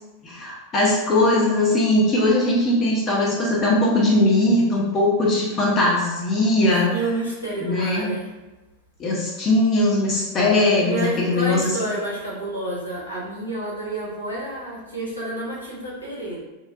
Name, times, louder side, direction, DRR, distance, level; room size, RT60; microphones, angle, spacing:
voice 1, 0.2-6.9 7.6-8.1 9.0-11.6, left 2 dB, 30° left, -4 dB, 0.7 m, -20 dB
voice 2, 6.9-8.3 10.8-16.4, right 2 dB, 85° left, -6 dB, 1.0 m, -29 dB
3.8 x 2.1 x 2.5 m, 1.1 s
figure-of-eight pair, 90°, 0 cm